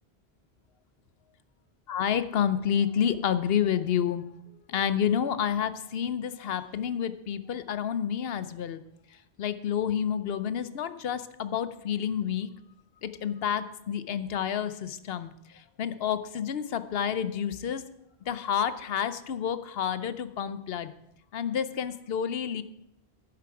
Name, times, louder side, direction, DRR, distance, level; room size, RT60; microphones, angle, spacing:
voice 1, 1.9-4.2 4.7-8.8 9.4-12.5 13.0-15.3 15.8-17.8 18.3-20.9 21.3-22.6, left 8 dB, 70° left, 12 dB, 0.9 m, -29 dB
11.0 x 9.5 x 4.7 m, 0.81 s
omnidirectional pair, 1.1 m